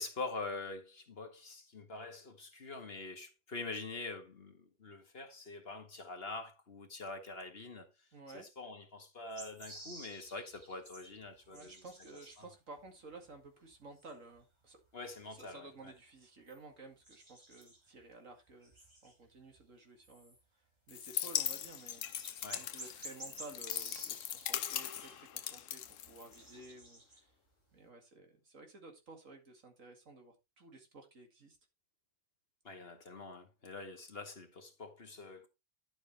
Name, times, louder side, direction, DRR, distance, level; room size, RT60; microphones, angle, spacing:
voice 1, 0.0-7.9 8.3-11.7 12.4-12.5 14.9-15.9 22.4-22.7 32.6-35.5, left 3 dB, 45° left, 1.9 m, -45 dB
voice 2, 8.1-8.5 11.5-14.8 15.4-18.7 19.0-20.4 20.9-22.3 22.6-27.2 27.7-31.6, right 3 dB, 70° right, 2.6 m, -54 dB
sound 1, 9.3-12.5 12.8-14.4 14.6-14.8 15.1-16.6 17.0-18.0 18.5-19.6 20.0-20.4 21.4-21.5 21.6-25.2 25.6-27.6, equal, 20° right, 2.8 m, -53 dB
sound 2, 20.9-26.6, left 10 dB, 70° left, 1.0 m, -39 dB
11.0 x 7.1 x 3.2 m
omnidirectional pair, 1.4 m